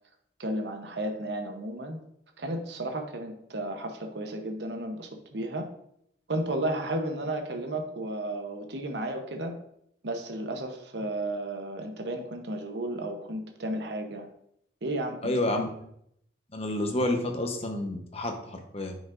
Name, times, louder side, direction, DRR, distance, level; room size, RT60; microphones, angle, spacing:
voice 1, 0.4-2.0 2.4-5.7 6.3-9.6 10.0-14.3 14.8-15.3, right 1 dB, 65° right, 4 dB, 0.9 m, -33 dB
voice 2, 15.2-15.7 16.5-19.0, left 1 dB, 35° left, 4 dB, 0.9 m, -29 dB
9.4 x 5.1 x 2.5 m, 0.72 s
head